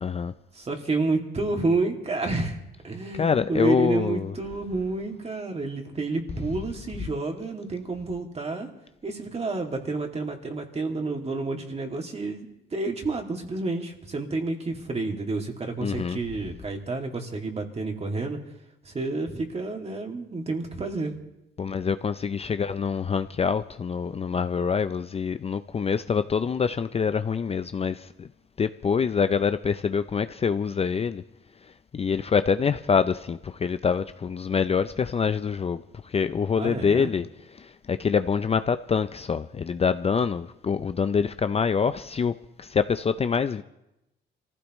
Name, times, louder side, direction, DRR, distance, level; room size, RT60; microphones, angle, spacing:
voice 1, 0.0-0.3 3.1-4.3 15.8-16.2 21.6-28.3 28.6-31.2 31.9-37.3 37.6-42.3 42.6-43.6, left 6 dB, 30° left, 0.5 m, -25 dB
voice 2, 0.5-2.6 2.8-8.7 9.0-18.4 18.8-21.2 36.6-37.1, right 3 dB, 30° right, 2.4 m, -29 dB
25.5 x 15.5 x 3.1 m
cardioid pair, 90°, 20 cm